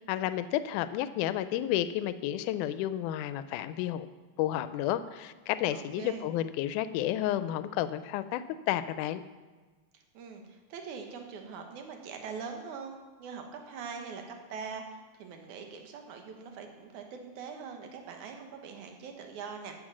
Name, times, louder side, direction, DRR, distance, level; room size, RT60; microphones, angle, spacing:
voice 1, 0.0-4.1 4.4-9.2, left 12 dB, 85° left, 12 dB, 2.1 m, -31 dB
voice 2, 5.7-6.3 10.1-19.7, right 5 dB, 75° right, 4 dB, 2.7 m, -43 dB
14.0 x 7.6 x 6.2 m, 1.3 s
omnidirectional pair, 3.5 m